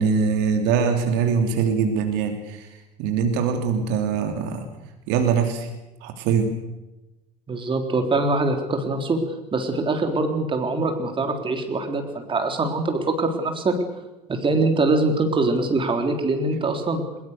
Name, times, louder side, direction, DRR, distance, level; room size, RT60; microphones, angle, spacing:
voice 1, 0.0-4.7 5.1-5.7 6.0-6.5, right 6 dB, 55° right, 5 dB, 3.0 m, -23 dB
voice 2, 7.5-9.2 9.5-13.7 14.3-17.0, right 3 dB, 25° right, 5 dB, 3.8 m, -23 dB
23.0 x 21.5 x 6.8 m, 1.0 s
figure-of-eight pair, 70°, 21 cm